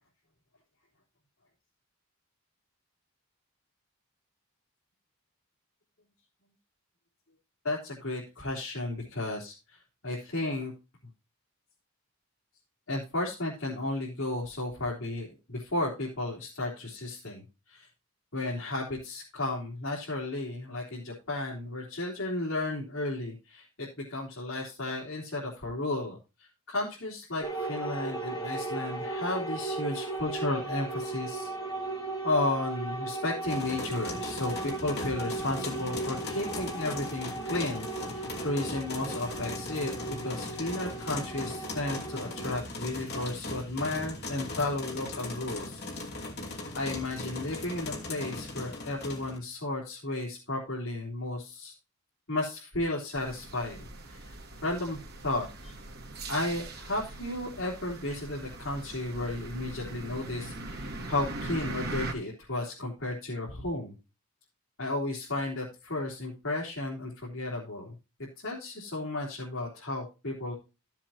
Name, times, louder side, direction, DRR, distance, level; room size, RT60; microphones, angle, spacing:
voice 1, 7.6-10.7 12.9-17.9 18.3-31.5 32.2-39.9 40.2-45.8 46.7-51.7 52.3-55.0 55.2-55.7 56.3-63.9 64.8-68.0 68.4-70.5, left 2 dB, 65° left, -6 dB, 3.5 m, -33 dB
sound 1, 27.4-42.6, right 2 dB, 20° left, 3.2 m, -37 dB
sound 2, 33.4-49.4, left 2 dB, 45° left, 2.6 m, -39 dB
sound 3, 53.1-62.1, right 2 dB, 45° right, 1.9 m, -41 dB
14.5 x 7.5 x 2.8 m, 0.29 s
head